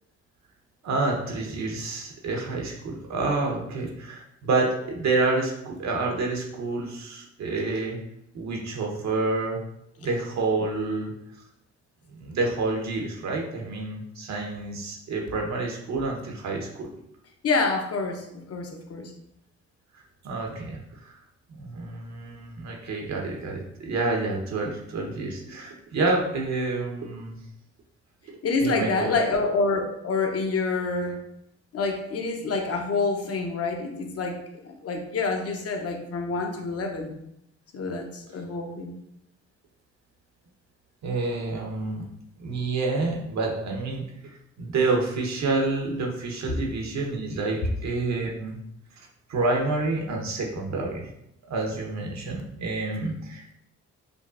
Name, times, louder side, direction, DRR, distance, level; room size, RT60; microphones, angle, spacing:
voice 1, 0.8-8.0 8.3-9.6 10.0-11.1 12.1-16.9 20.2-21.2 21.6-27.4 28.3-29.2 41.0-42.1 42.4-48.6 49.0-51.1 51.5-53.5, right 3 dB, 65° right, 0 dB, 0.9 m, -28 dB
voice 2, 17.4-19.1 28.4-31.2 31.7-37.1 37.7-38.9, left 3 dB, 50° left, 3 dB, 0.7 m, -27 dB
5.0 x 2.4 x 2.5 m, 0.77 s
cardioid pair, 90°, 30 cm